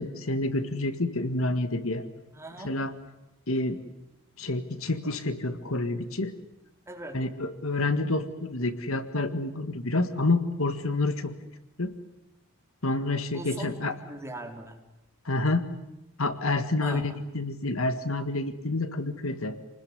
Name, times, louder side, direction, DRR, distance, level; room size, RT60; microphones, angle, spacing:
voice 1, 0.0-2.1 2.6-2.9 3.5-3.8 4.4-6.3 7.1-11.3 11.8-11.9 12.8-13.9 15.3-15.6 16.2-19.6, left 2 dB, 65° left, 10 dB, 1.8 m, -28 dB
voice 2, 2.3-2.8 6.9-7.2 13.3-14.8 16.8-17.2, right 1 dB, 10° right, 3 dB, 3.8 m, -40 dB
28.5 x 20.5 x 9.7 m, 0.94 s
head